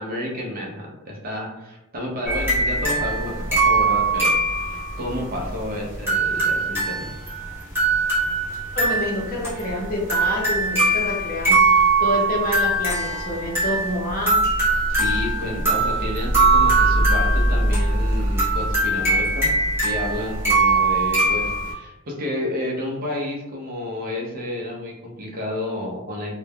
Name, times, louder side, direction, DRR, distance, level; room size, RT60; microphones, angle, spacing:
voice 1, 0.0-7.1 15.0-19.5 19.8-26.3, left 1 dB, 40° right, -1 dB, 0.6 m, -30 dB
sound 1, 2.3-21.7, right 2 dB, 10° right, 1.1 m, -21 dB
voice 2, 8.7-14.4, left 1 dB, 40° left, -2 dB, 0.5 m, -27 dB
3.1 x 2.1 x 2.2 m, 0.93 s
head